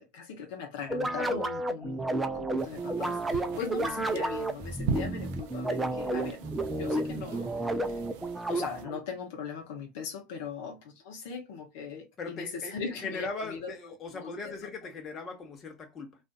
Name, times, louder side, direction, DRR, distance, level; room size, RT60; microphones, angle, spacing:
voice 1, 0.0-8.0 8.5-14.7, left 6 dB, 65° left, 0.8 m, -40 dB
sound 1, 0.9-9.0, right 2 dB, 10° right, 0.5 m, -31 dB
sound 2, 2.6-8.9, right 5 dB, 65° right, 0.5 m, -41 dB
voice 2, 12.2-16.2, left 3 dB, 35° left, 1.0 m, -39 dB
2.4 x 2.4 x 2.2 m
hypercardioid pair, 90°, 0 cm